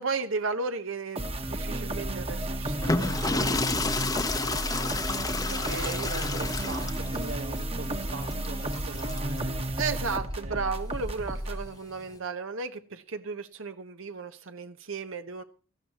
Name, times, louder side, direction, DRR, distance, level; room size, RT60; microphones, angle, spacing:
voice 1, 0.0-3.6 4.7-4.8 5.5-6.1 9.8-15.4, right 4 dB, 65° right, 1.1 m, -34 dB
sound 1, 1.2-11.7, right 1 dB, 30° right, 1.3 m, -32 dB
sound 2, 2.7-9.4 10.7-12.1, left 3 dB, 20° left, 0.9 m, -31 dB
voice 2, 3.8-4.2 4.6-4.9 5.5-9.7 10.4-10.7, right 2 dB, 85° right, 4.1 m, -41 dB
17.5 x 14.0 x 3.0 m
head